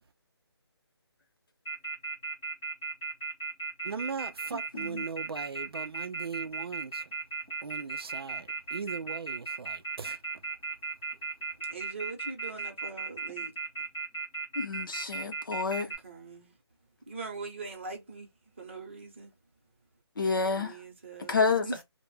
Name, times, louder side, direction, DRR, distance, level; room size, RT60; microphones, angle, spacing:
Telephone, 1.7-16.0, right 4 dB, 5° left, 0.4 m, -36 dB
voice 1, 3.8-7.0 7.6-10.2, right 5 dB, 60° right, 0.4 m, -39 dB
voice 2, 4.7-5.1 14.6-15.9 20.2-20.8 21.3-21.7, left 4 dB, 50° left, 0.6 m, -29 dB
voice 3, 11.7-13.5 15.7-16.5 17.1-18.3 18.6-19.3 20.3-21.8, right 3 dB, 25° right, 0.7 m, -42 dB
2.1 x 2.0 x 3.2 m
hypercardioid pair, 170°, 14 cm